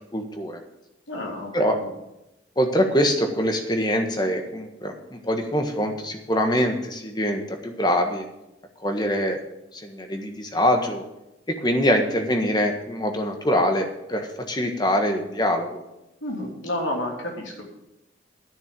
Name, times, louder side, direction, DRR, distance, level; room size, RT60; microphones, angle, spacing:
voice 1, 0.1-0.6 1.5-1.8 2.6-8.2 8.8-9.4 9.7-11.0 11.5-15.8, equal, 20° left, 4 dB, 1.4 m, -24 dB
voice 2, 1.1-1.9 16.2-17.6, left 1 dB, 90° left, 0 dB, 3.2 m, -30 dB
11.0 x 6.7 x 8.4 m, 0.90 s
head